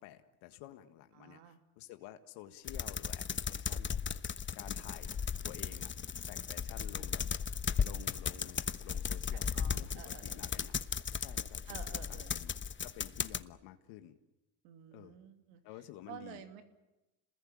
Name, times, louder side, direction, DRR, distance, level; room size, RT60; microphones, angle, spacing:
voice 1, 0.0-4.0 4.5-5.9 6.3-7.2 7.8-10.8 11.2-12.5 12.8-14.2 14.9-15.2 15.6-16.4, left 13 dB, 85° left, 8 dB, 1.7 m, -52 dB
voice 2, 1.1-1.6 6.7-7.1 9.3-10.7 11.7-12.3 14.6-15.6 16.1-16.6, right 9 dB, 85° right, 7 dB, 2.9 m, -52 dB
sound 1, 2.7-13.4, left 7 dB, 30° left, 1.1 m, -36 dB
27.5 x 20.5 x 8.7 m, 0.97 s
supercardioid pair, 85°, 40 cm